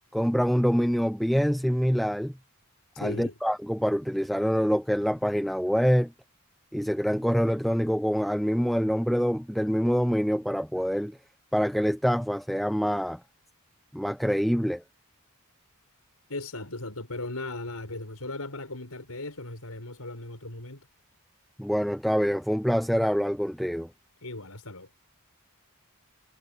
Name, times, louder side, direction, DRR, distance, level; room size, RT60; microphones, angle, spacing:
voice 1, 0.1-2.3 3.0-6.1 6.7-11.2 11.5-13.2 13.9-14.8 21.6-23.9, equal, ahead, 0.4 m, -25 dB
voice 2, 2.9-3.4 16.3-20.9 24.2-24.9, left 2 dB, 80° left, 6.4 m, -37 dB
head